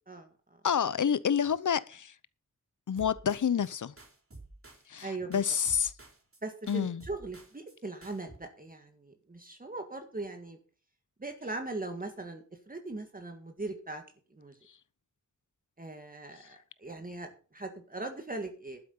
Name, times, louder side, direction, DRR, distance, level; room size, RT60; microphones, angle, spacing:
voice 1, 0.6-2.1 2.9-3.9 4.9-5.9 6.7-7.0, left 7 dB, 75° left, 0.8 m, -28 dB
sound 1, 3.0-3.7 4.0-5.1 5.3-6.4 6.7-7.8 8.0-8.4, right 2 dB, 45° right, 4.3 m, -51 dB
voice 2, 5.0-5.4 6.4-10.6 11.2-14.0 14.4-14.6 15.8-18.8, right 2 dB, 30° right, 1.8 m, -40 dB
12.0 x 8.7 x 5.6 m
wide cardioid pair, 100°, 31 cm